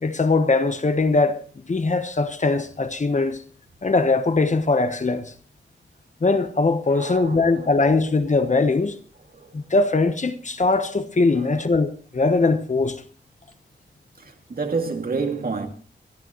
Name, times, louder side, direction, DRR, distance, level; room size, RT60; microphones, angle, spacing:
voice 1, 0.0-3.4 3.8-5.3 6.2-9.0 9.5-13.0, left 3 dB, 35° left, 1.1 m, -21 dB
voice 2, 6.9-7.7 9.3-9.5 11.4-11.5 14.2-15.7, right 4 dB, 50° right, 2.3 m, -29 dB
23.5 x 13.0 x 3.1 m
wide cardioid pair, 125°, 20 cm